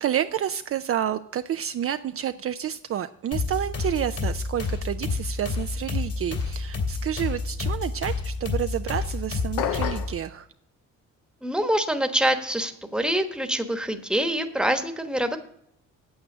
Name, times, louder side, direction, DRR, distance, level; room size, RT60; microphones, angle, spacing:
voice 1, 0.0-10.5, right 10 dB, 50° right, 9 dB, 0.5 m, -29 dB
sound 1, 3.3-10.2, left 4 dB, 55° left, 2.5 m, -29 dB
sound 2, 9.6-10.2, left 9 dB, 90° left, 0.8 m, -28 dB
voice 2, 11.4-15.4, right 1 dB, 5° right, 7 dB, 1.2 m, -25 dB
8.7 x 7.8 x 6.6 m, 0.74 s
cardioid pair, 90°, 30 cm